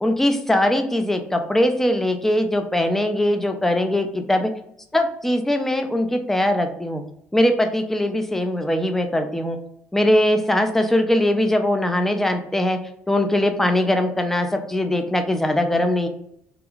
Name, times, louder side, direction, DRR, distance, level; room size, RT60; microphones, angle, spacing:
voice 1, 0.0-4.5 4.9-7.0 7.3-9.6 9.9-12.8 13.1-16.1, left 1 dB, 5° left, 6 dB, 0.3 m, -21 dB
2.4 x 2.3 x 2.9 m, 0.72 s
cardioid pair, 95°, 5 cm